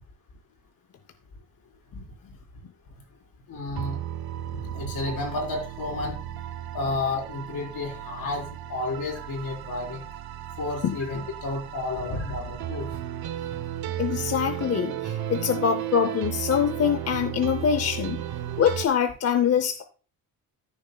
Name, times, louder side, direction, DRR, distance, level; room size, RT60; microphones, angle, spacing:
voice 1, 3.5-4.0 4.5-6.2 6.7-10.0 10.6-12.9, left 2 dB, 70° left, 0 dB, 4.2 m, -31 dB
sound 1, 3.8-18.9, right 11 dB, 80° right, 0.9 m, -34 dB
voice 2, 14.0-18.2 18.6-19.8, left 8 dB, 45° left, 9 dB, 0.7 m, -24 dB
13.5 x 7.0 x 2.2 m, 0.38 s
cardioid pair, 140°, 36 cm